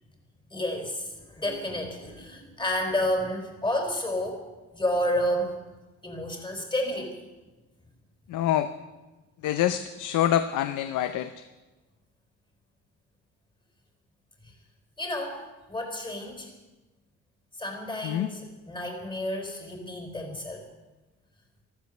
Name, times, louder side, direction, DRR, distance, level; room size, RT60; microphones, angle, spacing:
voice 1, 0.5-4.4 4.7-5.5 6.0-7.2 9.4-9.5 15.0-16.5 17.6-20.6, left 1 dB, 15° left, 2 dB, 4.4 m, -30 dB
voice 2, 8.3-8.7 9.4-11.4 18.0-18.3, left 11 dB, 85° left, 11 dB, 0.7 m, -26 dB
14.0 x 13.5 x 6.7 m, 1.1 s
cardioid pair, 90°, 30 cm